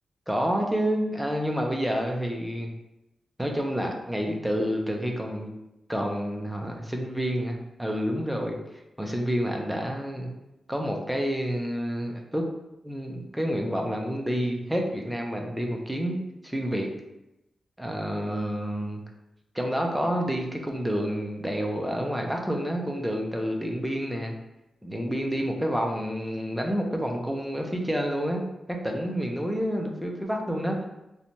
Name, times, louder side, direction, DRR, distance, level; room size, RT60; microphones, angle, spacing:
voice 1, 0.3-2.7 3.4-5.5 5.9-8.6 9.0-10.3 10.7-12.4 12.8-16.9 17.8-19.0 19.5-24.3 24.8-28.4 28.7-30.8, equal, 5° right, 1 dB, 0.3 m, -29 dB
2.6 x 2.1 x 2.9 m, 0.90 s
wide cardioid pair, 180°, 0 cm